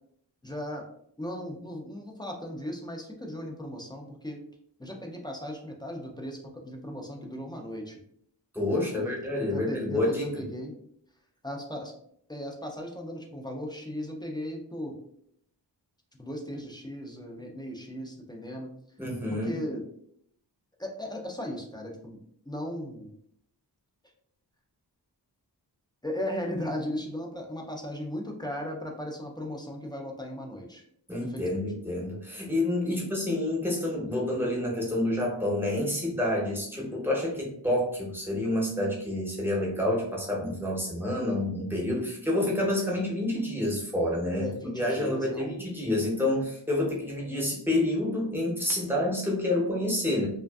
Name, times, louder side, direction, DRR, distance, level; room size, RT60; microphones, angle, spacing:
voice 1, 0.4-0.8 1.2-4.4 4.8-8.0 8.8-10.7 11.4-11.9 12.3-14.9 16.2-18.7 19.3-19.8 20.8-22.2 22.5-23.1 26.0-30.8 31.2-31.6 32.9-33.1 42.4-42.5 44.4-45.6, equal, 10° left, 0 dB, 0.3 m, -37 dB
voice 2, 8.5-10.2 19.0-19.5 31.1-44.5 44.7-50.3, left 1 dB, 5° right, -4 dB, 0.7 m, -28 dB
2.5 x 2.4 x 2.2 m, 0.69 s
wide cardioid pair, 90°, 43 cm